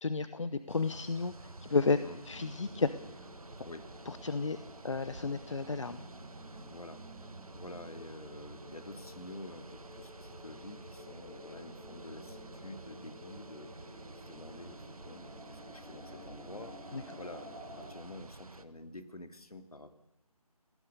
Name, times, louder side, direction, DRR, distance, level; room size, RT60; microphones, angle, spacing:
voice 1, 0.0-2.0 2.3-2.9 4.1-6.0 16.9-17.0, left 4 dB, 50° left, 13 dB, 0.9 m, -32 dB
sound 1, 0.7-18.6, right 3 dB, 65° right, 1.7 m, -51 dB
sound 2, 2.2-17.9, equal, 5° right, 6.2 m, -51 dB
voice 2, 6.7-7.0 7.5-13.7 14.1-19.9, left 2 dB, 70° left, 8 dB, 2.5 m, -49 dB
23.0 x 18.5 x 6.8 m, 0.90 s
figure-of-eight pair, 160°, 20 cm